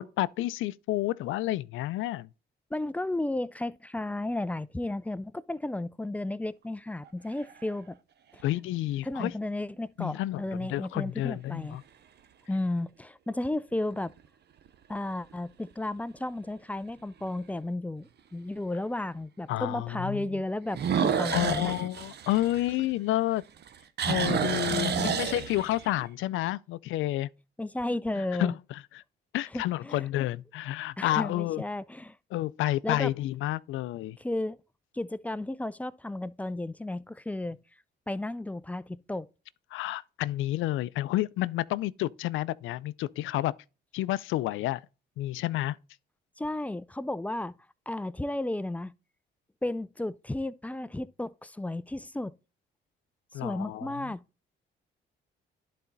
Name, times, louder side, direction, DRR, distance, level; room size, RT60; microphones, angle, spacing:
voice 1, 0.0-2.3 8.4-9.3 10.0-11.8 19.5-20.3 21.3-23.4 24.1-27.3 28.4-28.5 29.3-31.6 32.3-34.2 39.7-43.5 43.9-44.8 45.2-45.8 53.3-54.1, left 15 dB, 80° left, 0.4 m, -30 dB
voice 2, 2.7-8.0 8.3-8.4 9.0-11.8 12.5-14.1 14.9-21.7 24.7-25.2 27.6-28.6 29.5-30.1 31.0-32.2 32.8-33.1 34.2-34.6 34.9-37.6 38.1-39.3 46.4-47.5 47.9-48.9 49.6-52.3 53.3-54.2, left 1 dB, 5° left, 0.4 m, -33 dB
sound 1, 7.1-7.7 8.4-8.5 13.7-14.2 14.7-14.8 15.3-15.4 15.7-15.8 17.3-17.4 20.7-23.2 23.6-25.9, right 7 dB, 60° right, 0.9 m, -30 dB
11.0 x 4.2 x 3.9 m
cardioid pair, 90°, 20 cm